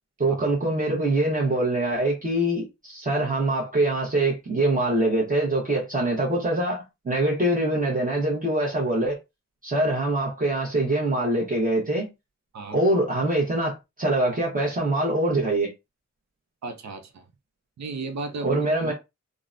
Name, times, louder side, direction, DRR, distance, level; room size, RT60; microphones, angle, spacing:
voice 1, 0.2-9.2 9.6-12.1 12.7-15.7 18.4-18.9, right 1 dB, 30° right, 0.9 m, -24 dB
voice 2, 16.6-17.2 17.8-18.6 18.8-18.9, right 3 dB, 70° right, 0.6 m, -34 dB
3.7 x 2.1 x 2.5 m
wide cardioid pair, 130°, 29 cm